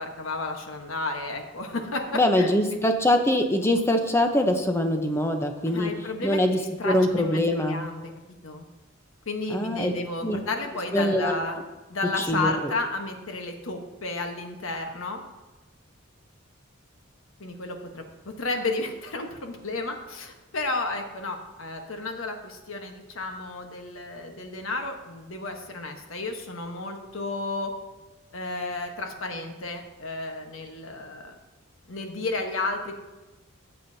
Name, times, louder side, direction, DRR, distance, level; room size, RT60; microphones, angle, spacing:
voice 1, 0.0-2.5 5.7-6.4 6.8-8.1 8.4-8.6 9.2-11.6 11.9-15.2 17.4-27.7 28.3-31.3 31.9-33.0, left 2 dB, 80° left, 4 dB, 1.2 m, -32 dB
voice 2, 2.1-5.9 6.2-6.6 6.8-7.8 9.5-9.9 10.2-10.4 10.9-11.4 12.2-12.7, left 1 dB, 15° left, 5 dB, 0.8 m, -23 dB
14.0 x 7.6 x 2.8 m, 1.2 s
head